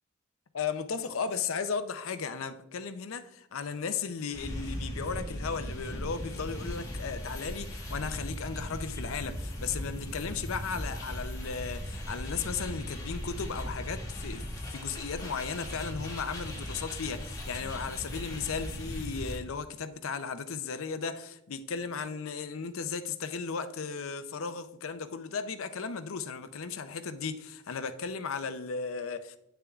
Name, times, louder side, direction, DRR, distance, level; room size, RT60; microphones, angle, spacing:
voice 1, 0.5-14.4 14.7-29.4, left 5 dB, 80° left, 0.6 m, -35 dB
sound 1, 4.3-19.4, equal, 15° left, 1.3 m, -38 dB
9.0 x 6.7 x 2.4 m
head